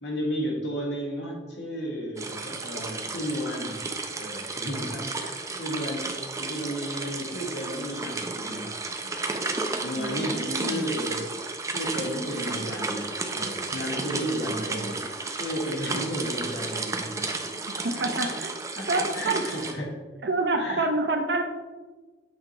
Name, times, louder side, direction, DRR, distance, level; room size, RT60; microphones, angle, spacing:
voice 1, 0.0-3.8 4.1-9.3 9.8-11.3 11.7-15.0 15.4-17.3 17.7-18.4 18.8-20.0 20.6-20.9, equal, 85° left, -1 dB, 1.5 m, -33 dB
sound 1, 2.2-19.7, right 3 dB, 15° right, 0.5 m, -33 dB
voice 2, 10.0-10.9 17.7-18.5 18.9-19.4 20.2-21.4, right 2 dB, 70° right, 5 dB, 0.7 m, -28 dB
7.9 x 4.6 x 2.9 m, 1.3 s
head